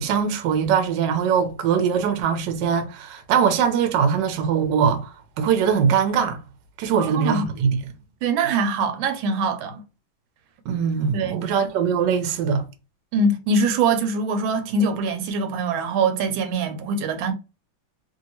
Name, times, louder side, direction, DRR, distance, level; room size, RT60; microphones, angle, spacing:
voice 1, 0.0-6.4 6.8-7.8 10.7-12.6, right 7 dB, 70° right, 1.2 m, -22 dB
voice 2, 6.9-7.5 8.2-9.8 11.1-11.5 13.1-17.3, right 3 dB, 85° right, 1.4 m, -23 dB
3.0 x 2.7 x 2.8 m
omnidirectional pair, 2.1 m